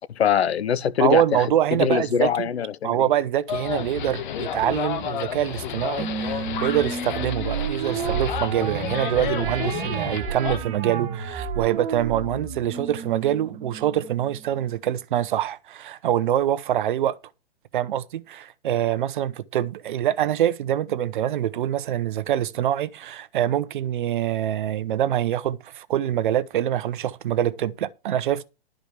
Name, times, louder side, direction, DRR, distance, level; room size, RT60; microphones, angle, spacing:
voice 1, 0.1-3.1, left 8 dB, 80° left, 0.9 m, -23 dB
voice 2, 1.0-2.5 2.8-17.2 17.7-28.4, right 11 dB, 50° right, 0.8 m, -25 dB
sound 1, 3.5-10.6, left 8 dB, 45° left, 1.3 m, -31 dB
sound 2, 6.0-14.7, right 6 dB, 25° right, 1.7 m, -31 dB
12.0 x 5.1 x 6.5 m
hypercardioid pair, 145°, 32 cm